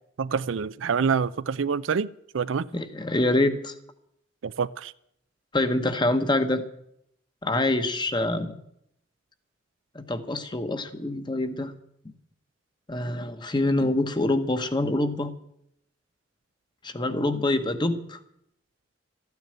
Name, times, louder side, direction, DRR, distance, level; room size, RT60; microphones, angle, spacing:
voice 1, 0.2-2.1 2.3-2.7 4.4-4.9, right 6 dB, 80° right, 0.5 m, -26 dB
voice 2, 2.7-3.7 5.5-6.6 7.4-8.6 9.9-11.7 12.0-12.1 12.9-15.3 16.8-18.2, left 2 dB, 25° left, 1.1 m, -25 dB
13.5 x 9.5 x 8.8 m
head